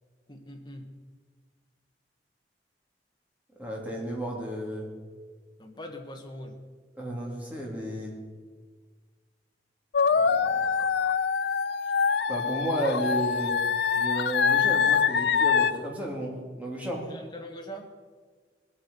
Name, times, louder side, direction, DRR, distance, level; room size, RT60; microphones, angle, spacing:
voice 1, 0.3-0.9 5.6-6.6 17.1-17.9, equal, 25° left, 3 dB, 1.5 m, -42 dB
voice 2, 3.6-4.9 6.9-8.2 10.1-11.1 12.3-13.5 13.9-17.1, right 1 dB, 10° right, -3 dB, 2.9 m, -33 dB
sound 1, 9.9-15.7, left 6 dB, 65° left, 0.5 m, -24 dB
19.5 x 9.1 x 5.4 m, 1.5 s
head